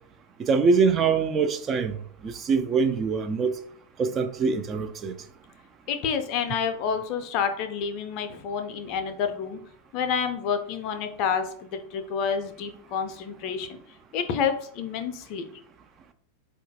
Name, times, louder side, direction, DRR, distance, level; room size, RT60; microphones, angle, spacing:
voice 1, 0.4-2.0 2.2-3.6 4.0-5.1, right 5 dB, 25° right, 0.3 m, -23 dB
voice 2, 5.9-9.6 9.9-13.8 14.1-15.4, left 6 dB, 40° left, 0.4 m, -29 dB
4.3 x 2.3 x 2.7 m
figure-of-eight pair, 90°, 0 cm